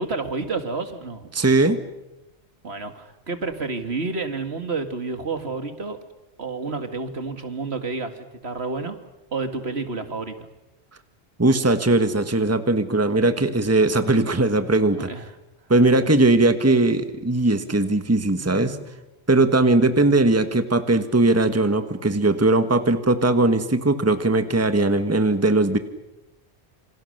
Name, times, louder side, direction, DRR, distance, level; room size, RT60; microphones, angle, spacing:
voice 1, 0.0-1.3 2.6-6.0 6.4-9.0 9.3-10.5 15.0-15.3, right 3 dB, 70° right, 8 dB, 2.3 m, -30 dB
voice 2, 1.3-1.8 11.4-15.1 15.7-18.9 19.3-25.8, right 2 dB, 15° right, 9 dB, 1.4 m, -19 dB
27.5 x 26.5 x 6.6 m, 0.95 s
omnidirectional pair, 1.1 m